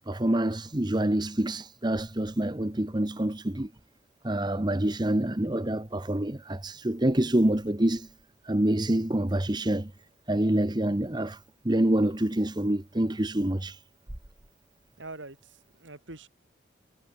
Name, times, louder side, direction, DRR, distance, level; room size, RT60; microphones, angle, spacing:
voice 1, 0.0-3.7 4.2-8.1 8.4-9.9 10.3-11.4 11.6-13.8, right 1 dB, 20° right, 1.0 m, -26 dB
voice 2, 15.0-16.3, right 2 dB, 70° right, 3.6 m, -44 dB
head